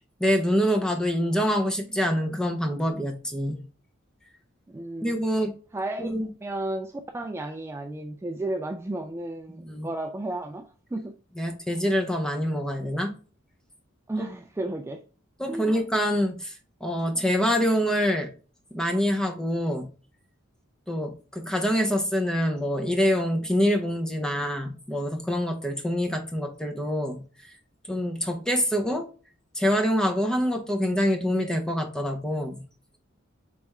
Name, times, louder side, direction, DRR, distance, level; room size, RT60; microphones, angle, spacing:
voice 1, 0.2-3.6 5.0-5.5 6.0-6.3 9.5-9.9 11.4-13.1 15.4-16.5 16.8-18.3 18.7-19.9 20.9-27.2 27.9-29.1 29.5-32.6, equal, 5° left, 0.7 m, -25 dB
voice 2, 4.7-5.4 5.7-6.1 6.4-11.1 14.1-15.0 15.5-15.8, right 1 dB, 15° right, 0.3 m, -33 dB
4.2 x 3.4 x 3.5 m
head